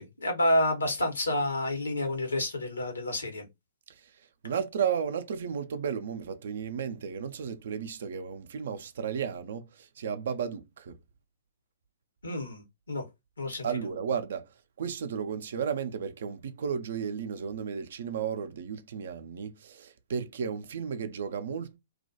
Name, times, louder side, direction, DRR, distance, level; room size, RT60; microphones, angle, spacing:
voice 1, 0.0-3.4 12.2-12.6 12.9-13.0 13.4-13.7, left 1 dB, 80° left, 0.9 m, -29 dB
voice 2, 4.4-11.0 13.6-14.5 14.8-21.8, right 7 dB, 60° right, 0.4 m, -33 dB
2.4 x 2.2 x 2.6 m
figure-of-eight pair, 120°, 0 cm